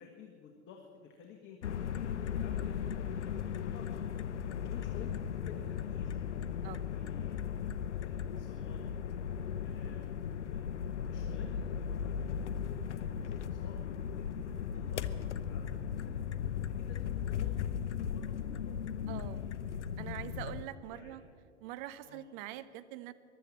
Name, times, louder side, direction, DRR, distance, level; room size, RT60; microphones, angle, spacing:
voice 1, 0.0-4.0 4.4-7.6 8.0-10.6 11.1-16.1 16.7-19.8 20.3-20.4 20.9-21.2 22.0-22.2, left 6 dB, 35° left, 2 dB, 1.6 m, -53 dB
sound 1, 1.6-20.6, left 8 dB, 75° left, 0.7 m, -37 dB
voice 2, 19.1-19.5 20.0-21.2 21.6-23.1, right 13 dB, 45° right, 14 dB, 0.9 m, -44 dB
15.0 x 11.5 x 7.4 m, 2.3 s
figure-of-eight pair, 95°, 35 cm